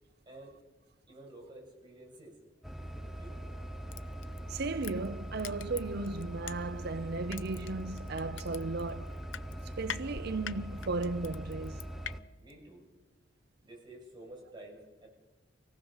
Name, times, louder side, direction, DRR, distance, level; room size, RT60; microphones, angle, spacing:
voice 1, 0.3-0.6 1.1-2.4 3.1-3.4 12.4-12.8 13.6-15.1, right 1 dB, 25° right, 7.6 m, -51 dB
sound 1, 2.6-12.2, right 1 dB, ahead, 1.2 m, -42 dB
Crushing, 3.9-6.9 7.3-12.1 12.5-12.6, left 9 dB, 85° left, 0.7 m, -44 dB
voice 2, 4.5-9.2 9.8-11.8, right 3 dB, 60° right, 0.7 m, -35 dB
25.5 x 18.5 x 7.2 m
head